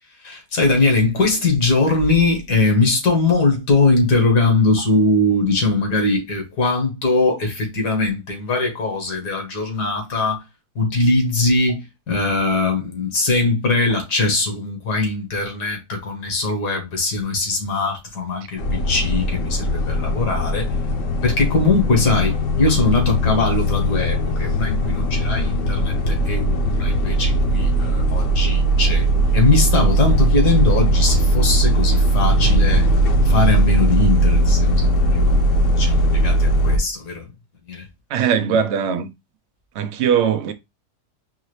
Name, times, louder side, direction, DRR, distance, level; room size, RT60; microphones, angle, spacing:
voice 1, 0.2-10.4 10.8-20.7 21.2-29.1 29.3-32.8 33.3-35.4 35.7-37.3 37.7-37.9, left 3 dB, 80° left, 2.1 m, -21 dB
sound 1, 18.6-36.8, right 1 dB, 60° left, 1.0 m, -18 dB
voice 2, 38.1-39.1 39.7-40.5, right 7 dB, 85° right, 0.6 m, -20 dB
4.8 x 2.6 x 3.1 m
omnidirectional pair, 1.7 m